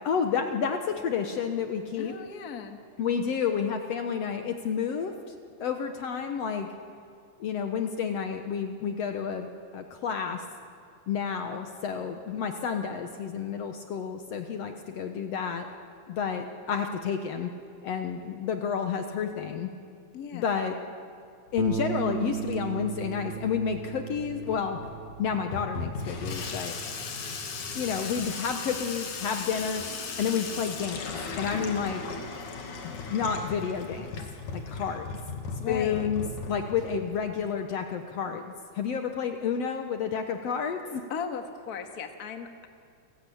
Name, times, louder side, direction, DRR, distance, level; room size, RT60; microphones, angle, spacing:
voice 1, 0.0-2.1 3.0-5.1 5.6-6.7 7.4-9.5 9.7-10.4 11.1-15.7 16.1-17.5 17.8-19.7 20.3-20.8 21.5-24.8 25.2-26.8 27.7-29.8 30.2-32.0 32.8-34.2 34.5-35.2 35.7-41.0, left 7 dB, 65° left, 5 dB, 2.1 m, -30 dB
voice 2, 2.0-2.8 20.1-20.6 35.6-36.1 41.1-42.7, left 6 dB, 40° left, 5 dB, 1.7 m, -37 dB
Water tap faucet / Sink (filling or washing), 21.5-37.5, left 4 dB, 85° left, 3.5 m, -38 dB
Bass guitar, 21.6-27.8, right 8 dB, 50° right, 1.5 m, -37 dB
30.0 x 15.5 x 8.6 m, 2.3 s
omnidirectional pair, 3.5 m